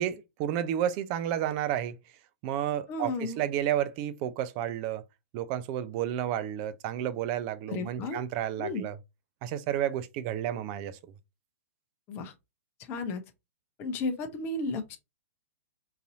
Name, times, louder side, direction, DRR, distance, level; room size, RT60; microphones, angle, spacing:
voice 1, 0.0-1.9 2.4-5.0 5.3-9.0 9.4-11.0, right 11 dB, 35° right, 0.4 m, -31 dB
voice 2, 2.9-3.4 7.7-8.2 8.6-8.9 12.1-12.3 12.8-13.2 13.8-15.0, left 3 dB, 30° left, 0.6 m, -33 dB
3.9 x 2.6 x 2.7 m
figure-of-eight pair, 110°, 8 cm